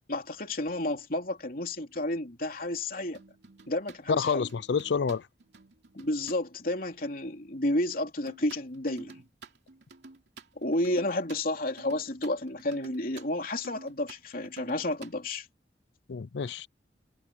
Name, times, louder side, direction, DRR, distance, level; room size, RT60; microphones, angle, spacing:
voice 1, 0.1-3.2 3.7-4.5 5.9-9.2 10.6-15.5, left 1 dB, 55° left, 3.2 m, -31 dB
sound 1, 3.0-6.4 8.3-15.1, right 3 dB, 75° right, 2.9 m, -50 dB
voice 2, 4.2-5.3 16.1-16.7, left 6 dB, 80° left, 0.5 m, -29 dB
head